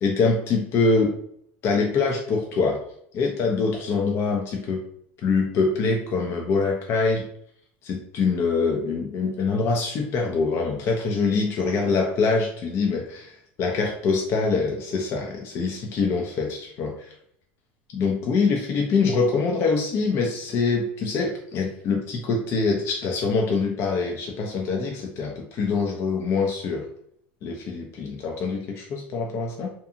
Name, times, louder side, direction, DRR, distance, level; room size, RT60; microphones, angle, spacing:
voice 1, 0.0-1.2 1.6-2.8 3.1-4.8 5.2-7.3 7.8-17.1 17.9-26.9 27.4-29.7, left 4 dB, 45° left, 0 dB, 0.5 m, -24 dB
2.7 x 2.2 x 2.5 m, 0.69 s
supercardioid pair, 110°, 6 cm